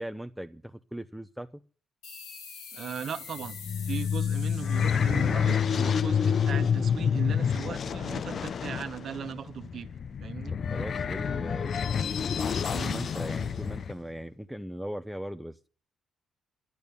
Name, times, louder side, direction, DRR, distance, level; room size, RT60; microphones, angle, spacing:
voice 1, 0.0-1.5 10.5-15.7, equal, ahead, 0.7 m, -39 dB
sound 1, 2.0-7.2, left 5 dB, 85° left, 3.6 m, -46 dB
voice 2, 2.7-3.6 3.9-9.9 10.2-10.5 12.7-13.1, right 8 dB, 60° right, 1.2 m, -38 dB
sound 2, 3.4-13.9, left 7 dB, 50° left, 0.6 m, -28 dB
11.0 x 10.5 x 6.9 m
cardioid pair, 90°, 0 cm